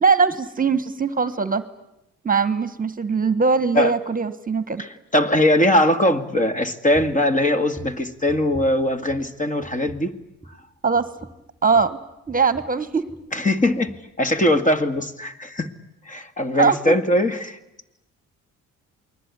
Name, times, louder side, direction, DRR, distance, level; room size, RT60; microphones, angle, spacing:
voice 1, 0.0-1.6 2.2-4.8 10.8-11.1 11.6-12.0 12.3-13.1 16.5-16.8, right 5 dB, 30° right, 13 dB, 1.3 m, -21 dB
voice 2, 4.8-10.1 13.3-13.9 14.2-15.7 16.1-17.6, left 1 dB, 25° left, 8 dB, 2.0 m, -21 dB
sound 1, 6.9-7.3 7.7-9.3 9.6-10.1 10.4-10.7 10.9-13.3 13.6-14.1 14.4-14.6 14.9-15.1, right 1 dB, ahead, 6.8 m, -42 dB
28.5 x 20.5 x 9.7 m, 0.89 s
cardioid pair, 90°, 30 cm